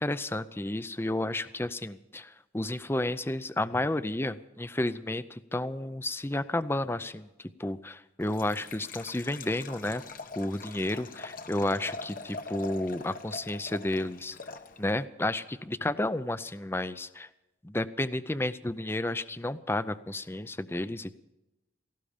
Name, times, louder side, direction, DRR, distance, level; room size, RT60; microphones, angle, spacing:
voice 1, 0.0-10.0 10.4-14.4 14.8-17.3 17.6-21.2, left 1 dB, 15° left, 14 dB, 0.5 m, -32 dB
Liquid, 8.2-15.0, left 3 dB, 50° left, 1.1 m, -43 dB
18.0 x 16.0 x 5.1 m, 0.97 s
head